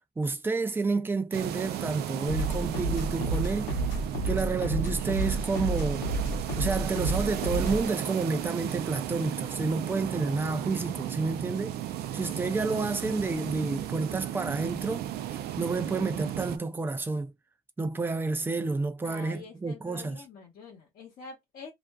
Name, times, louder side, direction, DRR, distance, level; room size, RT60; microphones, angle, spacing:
voice 1, 0.2-3.7 4.2-6.1 6.6-11.8 12.1-17.3 17.8-20.2, right 3 dB, 10° right, 0.4 m, -30 dB
sound 1, 1.3-16.6, right 11 dB, 70° right, 0.4 m, -35 dB
sound 2, 2.3-7.9, right 2 dB, 90° left, 0.9 m, -31 dB
voice 2, 19.0-21.7, left 4 dB, 60° left, 1.0 m, -46 dB
2.5 x 2.4 x 2.3 m
cardioid pair, 110°, 17 cm